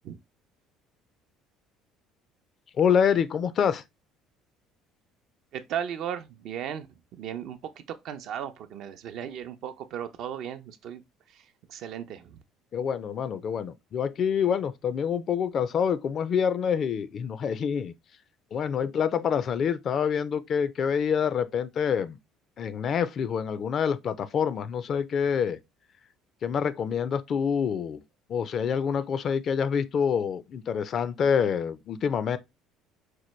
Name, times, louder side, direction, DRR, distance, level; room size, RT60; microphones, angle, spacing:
voice 1, 2.8-3.8 12.7-17.9 18.5-22.2 22.6-25.6 26.4-28.0 28.3-32.4, left 7 dB, 50° left, 0.4 m, -26 dB
voice 2, 5.5-6.9 7.1-11.0 11.3-11.4 11.7-12.4, right 9 dB, 65° right, 0.5 m, -36 dB
4.4 x 2.2 x 3.1 m
supercardioid pair, 80°, 0 cm